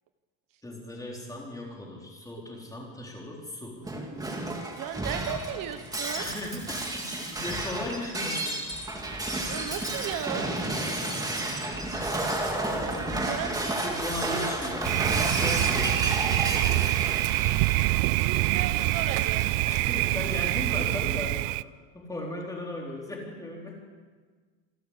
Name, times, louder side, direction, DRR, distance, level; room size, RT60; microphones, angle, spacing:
voice 1, 0.6-3.8 6.2-8.6 11.9-12.2 12.6-15.0 15.4-17.1 19.6-21.4 21.9-23.8, left 1 dB, 10° left, -2 dB, 4.0 m, -37 dB
Shatter, 3.8-19.4, right 1 dB, 10° right, 2.3 m, -32 dB
voice 2, 4.8-6.3 9.5-10.5 13.2-14.0 14.2-14.5 15.2-15.3 18.2-19.5, right 9 dB, 50° right, 8 dB, 1.3 m, -35 dB
Thunder, 14.8-21.6, right 21 dB, 85° right, 0.6 m, -25 dB
27.5 x 12.0 x 8.2 m, 1.5 s
cardioid pair, 170°, 43 cm